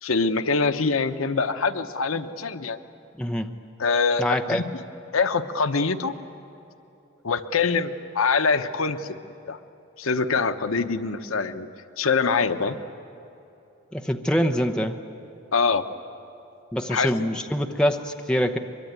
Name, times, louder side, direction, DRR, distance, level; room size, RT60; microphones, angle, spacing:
voice 1, 0.0-2.8 3.8-4.8 5.1-6.1 7.2-9.2 9.5-9.6 10.0-11.7 12.0-12.8 15.5-15.8 16.9-17.3, left 4 dB, 80° left, 9 dB, 0.9 m, -24 dB
voice 2, 3.2-3.5 4.2-4.6 13.9-15.0 16.7-18.6, equal, 5° left, 4 dB, 0.9 m, -24 dB
23.5 x 23.0 x 9.5 m, 2.8 s
head